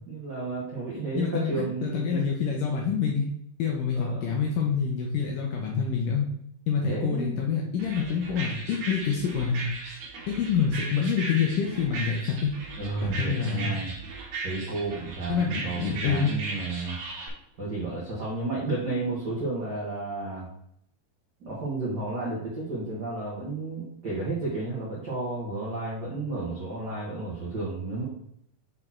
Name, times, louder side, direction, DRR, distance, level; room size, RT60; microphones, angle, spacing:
voice 1, 0.1-2.3 3.9-4.4 6.8-7.3 12.8-13.9 14.4-17.0 17.6-20.5 21.4-28.0, right 3 dB, 75° right, -6 dB, 0.9 m, -32 dB
voice 2, 1.1-3.3 3.6-6.3 6.7-9.6 10.3-12.5 13.0-13.7 15.3-16.4, left 6 dB, 80° left, 0 dB, 2.0 m, -27 dB
sound 1, 7.8-17.3, right 3 dB, 60° right, 2.8 m, -37 dB
6.6 x 4.2 x 4.3 m, 0.71 s
omnidirectional pair, 4.6 m